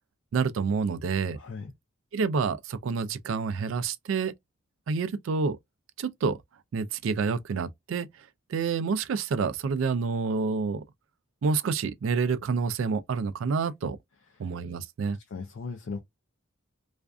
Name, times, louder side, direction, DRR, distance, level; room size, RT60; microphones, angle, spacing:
voice 1, 0.3-1.4 2.1-4.3 4.9-5.6 6.0-6.4 6.7-10.8 11.4-14.0 14.4-15.2, right 5 dB, 75° right, 0.4 m, -28 dB
voice 2, 1.3-1.7 14.4-14.5 15.3-16.0, left 4 dB, 70° left, 0.4 m, -37 dB
2.4 x 2.4 x 2.2 m
head